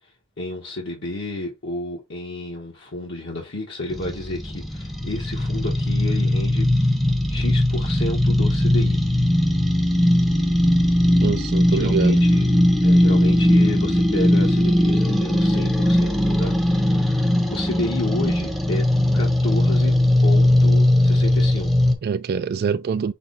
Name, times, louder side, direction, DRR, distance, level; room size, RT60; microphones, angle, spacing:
voice 1, 0.4-7.0 7.3-9.0 11.7-12.5 12.8-19.9 20.2-22.0, left 2 dB, 65° left, 1.2 m, -31 dB
sound 1, 3.9-22.0, left 1 dB, ahead, 0.7 m, -19 dB
voice 2, 11.2-12.3 22.0-23.1, right 6 dB, 50° right, 0.3 m, -24 dB
5.8 x 2.3 x 3.7 m
head